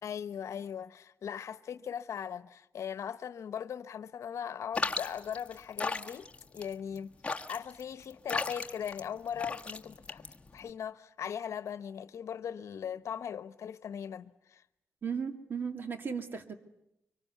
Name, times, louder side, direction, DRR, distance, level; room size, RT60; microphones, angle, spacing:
voice 1, 0.0-6.3 6.5-7.1 7.5-10.3 10.5-14.6, left 8 dB, 75° left, 1.0 m, -39 dB
sound 1, 4.7-10.7, left 3 dB, 20° left, 1.5 m, -36 dB
voice 2, 15.0-16.5, right 6 dB, 45° right, 2.3 m, -36 dB
24.5 x 24.5 x 9.4 m
wide cardioid pair, 130°, 5 cm